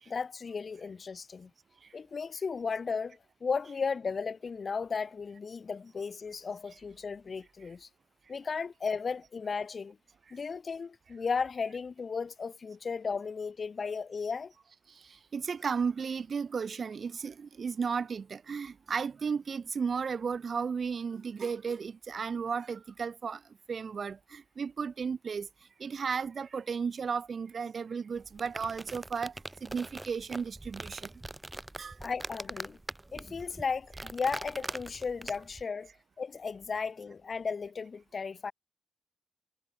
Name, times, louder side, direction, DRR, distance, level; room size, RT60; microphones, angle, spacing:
voice 1, 0.1-1.5 1.9-7.9 8.3-10.0 10.3-14.5 32.0-32.8 33.1-35.9 36.2-38.5, left 5 dB, 55° left, 0.6 m, -35 dB
voice 2, 14.9-23.4 23.7-25.5 25.8-31.1 31.8-32.0, right 6 dB, 60° right, 0.5 m, -34 dB
sound 1, 28.2-35.6, right 2 dB, 20° right, 0.9 m, -43 dB
supercardioid pair, 50°, 0 cm